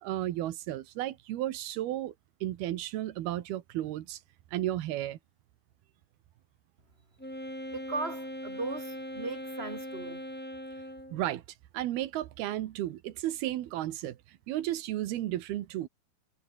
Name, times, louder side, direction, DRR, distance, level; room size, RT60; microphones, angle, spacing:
voice 1, 0.0-2.1 2.4-4.2 4.5-5.2 11.1-11.4 11.7-14.2 14.5-15.9, right 14 dB, 90° right, 3.2 m, -33 dB
Wind instrument woodwind instrument, 7.2-11.3, equal, ahead, 5.7 m, -40 dB
voice 2, 7.7-10.2, right 3 dB, 15° right, 5.3 m, -37 dB
omnidirectional pair, 4.3 m